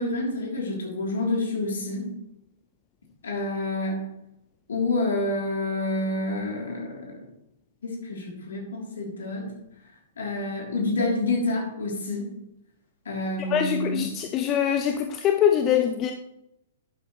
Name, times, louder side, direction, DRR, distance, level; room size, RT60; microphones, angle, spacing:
voice 1, 0.0-2.1 3.2-4.0 4.7-7.3 7.8-9.5 10.2-12.3 13.0-14.1, left 2 dB, 65° left, 3.5 m, -28 dB
voice 2, 13.5-16.1, left 9 dB, 30° left, 0.7 m, -23 dB
11.5 x 8.3 x 3.3 m
figure-of-eight pair, 110°, 0 cm